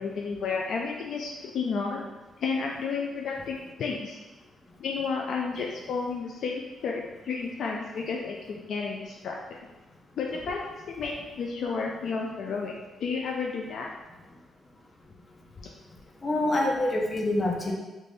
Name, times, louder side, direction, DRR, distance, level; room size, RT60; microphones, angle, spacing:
voice 1, 0.0-2.0 2.4-4.2 4.8-9.6 10.2-10.6 10.9-12.7 13.0-13.9, left 5 dB, 70° left, -1 dB, 0.3 m, -32 dB
voice 2, 15.3-15.7 16.2-17.7, left 1 dB, 35° left, -1 dB, 0.8 m, -27 dB
3.1 x 2.5 x 3.5 m, 1.1 s
supercardioid pair, 60°, 0 cm